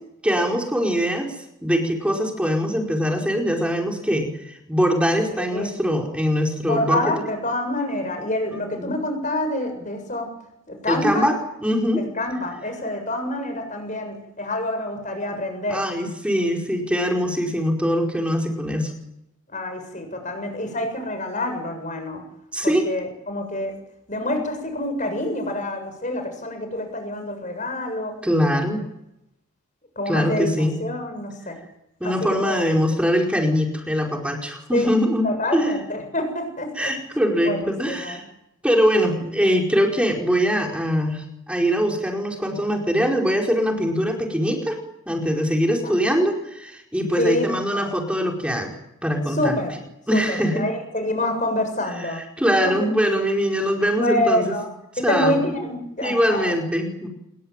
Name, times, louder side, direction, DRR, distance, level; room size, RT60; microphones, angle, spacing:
voice 1, 0.2-1.3 1.6-7.1 8.8-8.9 10.9-11.3 11.6-12.0 15.7-18.9 22.5-22.8 28.2-28.8 30.1-30.8 32.0-35.7 36.8-38.3 38.6-44.8 45.1-48.8 49.0-49.5 50.1-50.6 52.0-54.6 55.0-55.4 56.0-57.1, equal, 5° right, 1 dB, 4.8 m, -22 dB
voice 2, 6.6-10.3 10.7-11.3 12.0-15.8 19.5-22.2 22.6-23.8 24.1-28.1 30.0-30.5 30.8-31.6 32.0-32.7 34.7-34.9 35.2-36.9 37.4-38.2 39.1-39.2 45.8-45.9 47.2-47.8 49.3-49.7 50.1-52.2 52.6-52.7 54.0-54.7 55.0-56.5, left 1 dB, 35° left, 6 dB, 7.4 m, -27 dB
27.5 x 22.0 x 9.1 m, 0.84 s
head